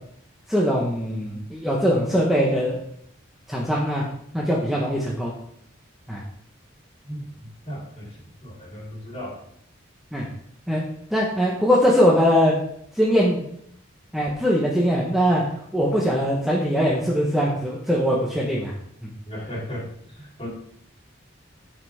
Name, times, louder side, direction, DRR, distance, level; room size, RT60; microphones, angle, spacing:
voice 1, 0.5-2.8 3.5-4.0 4.3-5.3 6.1-6.2 10.1-10.3 10.7-10.8 11.1-12.5 13.0-13.4 14.1-15.4 15.7-18.7 19.0-19.1, equal, ahead, -4 dB, 1.3 m, -21 dB
voice 2, 7.1-9.4 19.2-20.5, equal, 30° left, -4 dB, 3.7 m, -36 dB
15.0 x 5.9 x 3.7 m, 0.69 s
head